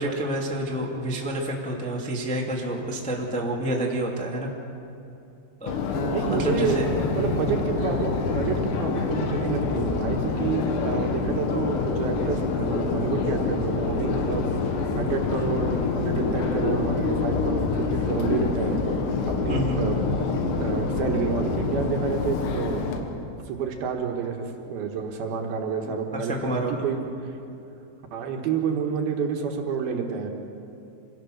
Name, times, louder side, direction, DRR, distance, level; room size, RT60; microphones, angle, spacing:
voice 1, 0.0-4.5 5.6-5.8 6.2-6.9 19.5-19.9 25.8-26.9, right 1 dB, 10° left, -2 dB, 0.4 m, -28 dB
Subway metro underground, 5.7-23.0, left 4 dB, 75° left, 3.6 m, -26 dB
Acoustic guitar, 5.9-9.2, right 4 dB, 55° left, 2.8 m, -35 dB
voice 2, 6.1-14.5 15.0-18.8 19.3-20.0 20.6-22.9 23.5-27.3 28.1-30.3, right 6 dB, 65° right, 3 dB, 2.9 m, -29 dB
26.5 x 17.0 x 6.5 m, 2.7 s
omnidirectional pair, 5.3 m